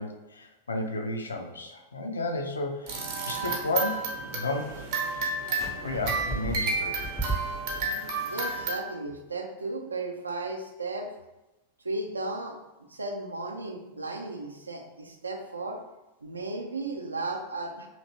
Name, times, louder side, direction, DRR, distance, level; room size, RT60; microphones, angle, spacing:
voice 1, 0.0-3.0 3.3-4.9 5.8-7.0, left 2 dB, 75° left, 4 dB, 0.4 m, -32 dB
sound 1, 2.9-8.7, right 3 dB, 50° right, 0.7 m, -31 dB
sound 2, 5.5-7.9, right 2 dB, ahead, 0.5 m, -35 dB
voice 2, 8.3-11.1 11.8-12.6 12.9-15.8 16.2-17.9, right 2 dB, 80° right, 2 dB, 0.4 m, -35 dB
2.9 x 2.6 x 2.9 m, 0.99 s
figure-of-eight pair, 90°, 0 cm